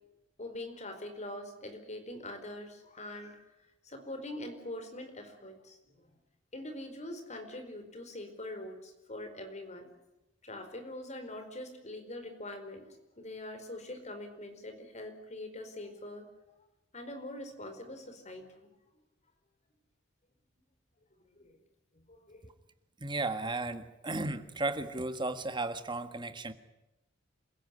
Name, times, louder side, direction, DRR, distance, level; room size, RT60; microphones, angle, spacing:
voice 1, 0.4-3.5 3.8-5.8 6.5-9.9 10.4-16.3 16.9-18.6 21.4-21.6 21.9-22.5, left 1 dB, 35° left, 7 dB, 4.6 m, -43 dB
voice 2, 23.0-26.5, right 2 dB, 25° right, 10 dB, 1.6 m, -34 dB
27.5 x 16.5 x 9.7 m, 0.97 s
head